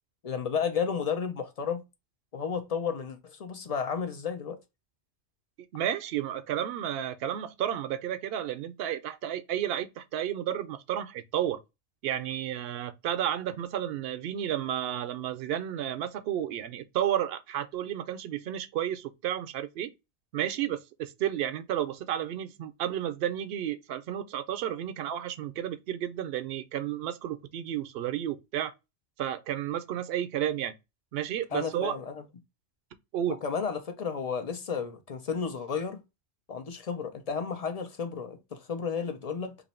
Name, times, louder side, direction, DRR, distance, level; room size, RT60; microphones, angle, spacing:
voice 1, 0.2-1.8 2.3-4.6 31.5-32.2 33.3-36.0 36.5-39.6, left 6 dB, 40° left, 0.6 m, -32 dB
voice 2, 5.7-11.6 12.0-19.9 20.3-28.7 29.2-30.7 31.1-32.0 33.1-33.4, right 11 dB, 65° right, 0.8 m, -32 dB
3.0 x 2.5 x 4.2 m
omnidirectional pair, 1.1 m